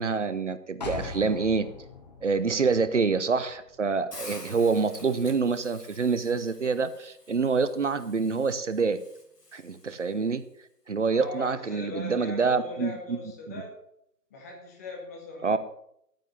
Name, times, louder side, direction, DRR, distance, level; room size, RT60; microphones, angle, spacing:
voice 1, 0.0-1.7 2.2-9.0 9.5-10.4 10.9-13.2 13.5-13.6 15.4-15.6, right 4 dB, 50° right, 13 dB, 0.8 m, -26 dB
sound 1, 0.8-4.6 4.9-5.0, left 4 dB, 25° left, 1.1 m, -42 dB
Hiss, 4.1-10.2, left 2 dB, 75° left, 2.9 m, -48 dB
voice 2, 11.1-13.7 14.3-15.6, left 2 dB, 10° left, -1 dB, 1.3 m, -39 dB
9.6 x 9.1 x 6.7 m, 0.76 s
figure-of-eight pair, 155°, 48 cm